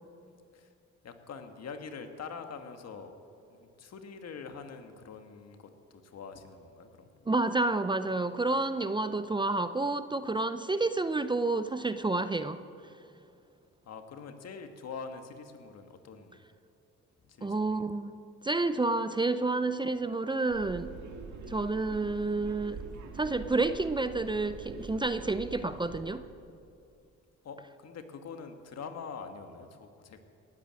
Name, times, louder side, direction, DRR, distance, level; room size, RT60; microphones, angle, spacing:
voice 1, 1.0-3.1 3.5-7.1 13.8-16.4 17.3-17.9 27.4-30.2, left 5 dB, 55° left, 6 dB, 1.6 m, -44 dB
voice 2, 7.3-12.6 17.4-18.2 18.4-20.9 21.5-22.8 23.1-26.2, right 3 dB, 15° right, 11 dB, 0.5 m, -29 dB
sound 1, 20.5-26.0, right 4 dB, 70° right, 1.7 m, -45 dB
18.5 x 8.8 x 7.6 m, 2.6 s
cardioid pair, 90°, 30 cm